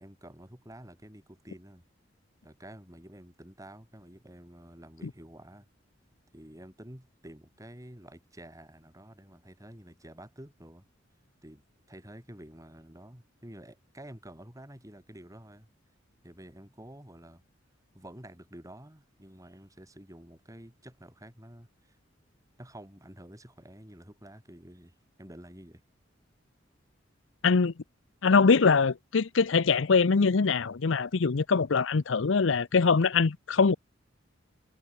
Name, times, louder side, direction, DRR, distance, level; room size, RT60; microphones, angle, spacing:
voice 1, 0.0-1.8 2.4-5.7 6.3-10.8 11.4-15.7 16.2-17.4 17.9-22.0 22.6-25.8, right 1 dB, 15° right, 5.8 m, -49 dB
voice 2, 27.4-27.7 28.2-33.8, left 5 dB, 70° left, 0.6 m, -23 dB
head